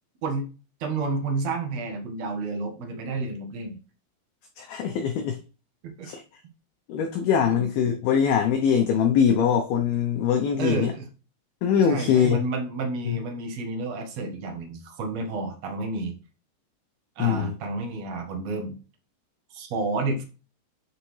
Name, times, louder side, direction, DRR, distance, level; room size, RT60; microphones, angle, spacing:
voice 1, 0.8-3.8 5.8-6.1 7.5-7.6 10.6-11.1 11.8-16.1 17.1-18.8 19.5-20.2, right 3 dB, 70° right, 3 dB, 1.5 m, -30 dB
voice 2, 4.6-5.4 6.0-6.2 6.9-10.9 11.6-12.4 13.1-13.2 17.2-17.5, left 7 dB, 80° left, 4 dB, 2.2 m, -22 dB
8.8 x 6.4 x 3.2 m, 0.34 s
omnidirectional pair, 5.4 m